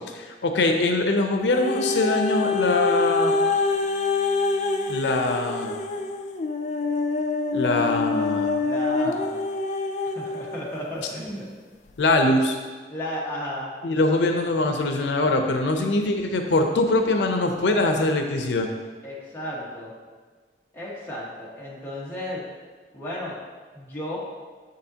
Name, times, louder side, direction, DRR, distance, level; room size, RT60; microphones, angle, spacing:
voice 1, 0.1-3.3 4.9-5.8 7.5-8.6 12.0-12.6 13.8-18.7, left 2 dB, 90° left, 4 dB, 0.6 m, -23 dB
sound 1, 1.5-10.6 11.3-11.4, left 3 dB, 40° left, 0.4 m, -25 dB
voice 2, 8.6-9.5 10.1-11.5 12.9-13.7 19.0-19.9 20.7-22.5 22.9-23.4 23.7-24.2, equal, 15° left, -7 dB, 1.4 m, -34 dB
7.2 x 6.6 x 2.8 m, 1.5 s
head